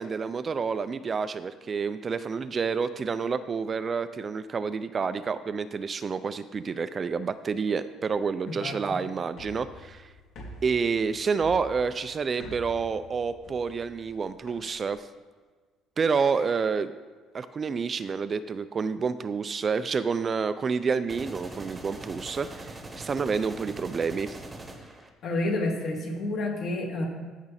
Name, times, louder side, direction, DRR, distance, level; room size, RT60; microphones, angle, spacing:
voice 1, 0.0-10.1 10.6-15.1 16.0-16.9 17.3-24.4, right 5 dB, 30° right, 12 dB, 0.4 m, -29 dB
voice 2, 8.5-9.0 25.2-27.0, left 2 dB, 50° left, 1 dB, 2.3 m, -29 dB
sound 1, 9.3-15.0, equal, 65° left, 3.0 m, -47 dB
sound 2, 21.1-25.1, right 2 dB, 15° right, 1.1 m, -42 dB
15.0 x 5.9 x 4.2 m, 1.4 s
cardioid pair, 130°, 0 cm